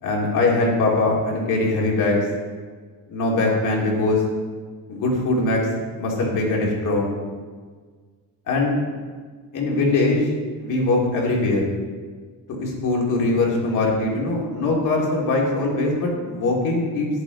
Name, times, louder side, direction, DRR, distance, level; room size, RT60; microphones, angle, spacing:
voice 1, 0.0-2.3 3.1-4.2 4.9-5.7 6.0-7.2 8.5-8.8 9.5-10.3 10.6-11.6 12.6-17.1, left 2 dB, 60° left, -2 dB, 2.7 m, -21 dB
11.0 x 10.0 x 4.0 m, 1.5 s
cardioid pair, 180°, 35 cm